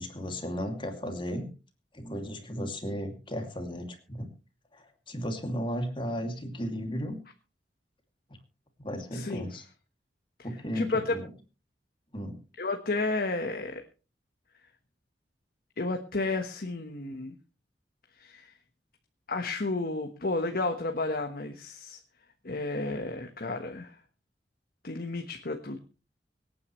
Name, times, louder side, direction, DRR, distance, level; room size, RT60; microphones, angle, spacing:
voice 1, 0.0-1.5 1.9-4.3 4.7-7.2 8.8-9.6 10.4-11.3 12.1-12.4, equal, 30° left, 5 dB, 2.6 m, -35 dB
voice 2, 9.1-9.5 10.4-10.5 10.7-11.2 12.6-13.8 15.8-17.3 18.2-18.5 19.3-22.0 22.4-24.0 24.8-25.8, left 2 dB, 60° left, 5 dB, 1.4 m, -32 dB
25.0 x 9.6 x 3.2 m, 0.33 s
head